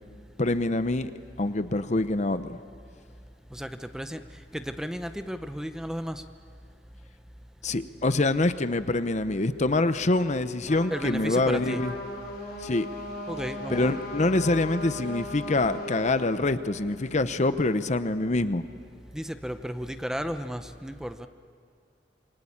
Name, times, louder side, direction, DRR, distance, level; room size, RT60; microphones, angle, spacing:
voice 1, 0.4-1.1 1.4-2.6 7.6-11.9 12.6-12.9 13.7-18.7, left 2 dB, 40° left, 12 dB, 0.8 m, -25 dB
voice 2, 3.5-4.2 4.5-6.2 10.9-11.8 13.3-14.0 19.1-21.3, equal, 5° right, 9 dB, 0.8 m, -34 dB
Trumpet, 10.6-16.3, left 1 dB, 55° left, 5.8 m, -37 dB
27.5 x 23.0 x 8.7 m, 2.2 s
head